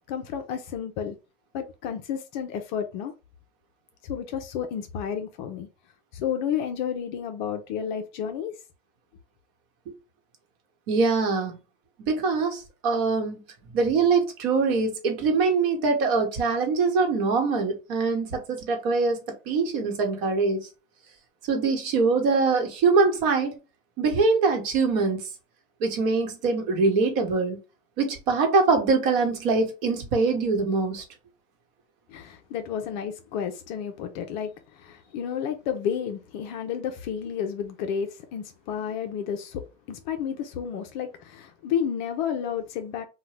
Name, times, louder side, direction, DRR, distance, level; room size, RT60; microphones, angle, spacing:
voice 1, 0.1-1.2 1.5-3.1 4.0-5.7 6.1-8.5 32.1-34.5 34.8-39.6 39.9-43.1, left 8 dB, 40° left, 0.4 m, -31 dB
voice 2, 10.9-11.6 12.0-13.4 13.7-19.2 19.5-20.7 21.5-23.5 24.0-25.2 25.8-27.6 28.0-31.0, right 4 dB, 50° right, 1.1 m, -23 dB
2.7 x 2.2 x 3.2 m
hypercardioid pair, 120°, 38 cm